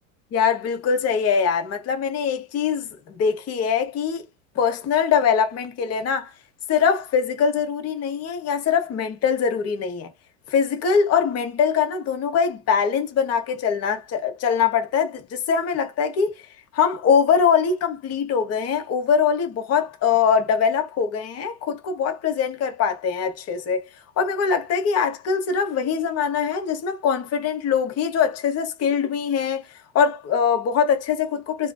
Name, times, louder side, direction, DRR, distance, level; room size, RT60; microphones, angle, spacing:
voice 1, 0.3-4.2 4.6-6.3 6.7-10.1 10.5-16.3 16.7-23.8 24.2-29.7 29.9-31.7, left 6 dB, 40° left, 0.9 m, -22 dB
2.4 x 2.2 x 2.3 m
hypercardioid pair, 95°, 40 cm